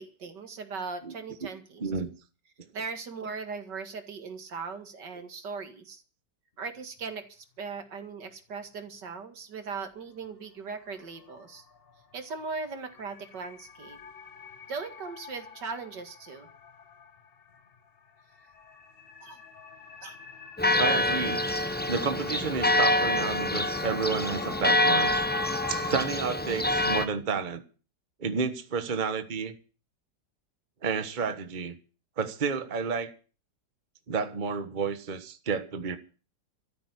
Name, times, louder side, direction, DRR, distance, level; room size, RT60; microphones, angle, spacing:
voice 1, 0.0-1.8 2.7-6.0 6.6-11.6 12.1-14.0 14.7-16.5 19.2-19.4 20.0-20.2, right 4 dB, 75° right, 2.6 m, -39 dB
sound 1, 7.0-7.1 10.2-10.3 10.7-26.0, left 5 dB, 40° left, 1.0 m, -44 dB
Church bell, 20.6-27.1, left 1 dB, 15° left, 0.4 m, -26 dB
voice 2, 20.8-21.4 21.9-25.1 25.7-27.6 28.2-29.5 30.8-31.8 32.2-33.1 34.1-36.0, right 5 dB, 30° right, 1.3 m, -30 dB
13.5 x 9.0 x 9.7 m
omnidirectional pair, 1.9 m